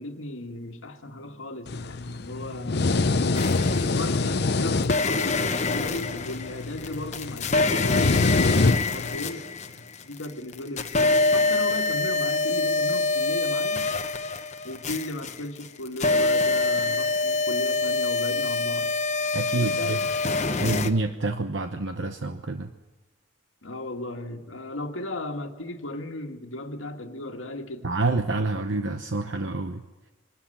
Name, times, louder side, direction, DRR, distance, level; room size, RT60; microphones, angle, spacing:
voice 1, 0.0-3.2 4.0-13.9 14.6-18.9 19.6-20.0 23.6-27.9, left 1 dB, 80° left, 1.8 m, -36 dB
sound 1, 1.7-9.2, left 3 dB, 55° left, 0.7 m, -26 dB
sound 2, 3.3-4.2 4.8-10.2 10.5-20.9, left 3 dB, 35° left, 1.0 m, -25 dB
voice 2, 19.3-20.0 20.6-22.7 27.8-29.8, right 2 dB, 65° right, 1.0 m, -27 dB
23.0 x 13.0 x 9.9 m
head